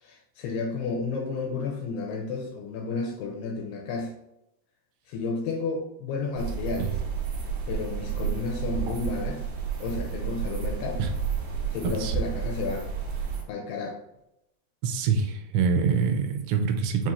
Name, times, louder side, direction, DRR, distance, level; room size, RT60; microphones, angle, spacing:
voice 1, 0.0-4.1 5.1-7.0 7.7-9.5 9.8-11.0 11.7-12.9 13.5-14.0, left 4 dB, 80° left, 1 dB, 2.4 m, -32 dB
sound 1, 6.4-13.4, right 6 dB, 70° right, 1.8 m, -31 dB
voice 2, 11.8-12.1 14.8-17.1, right 5 dB, 90° right, 5 dB, 2.8 m, -25 dB
6.9 x 2.4 x 3.0 m, 0.83 s
omnidirectional pair, 5.0 m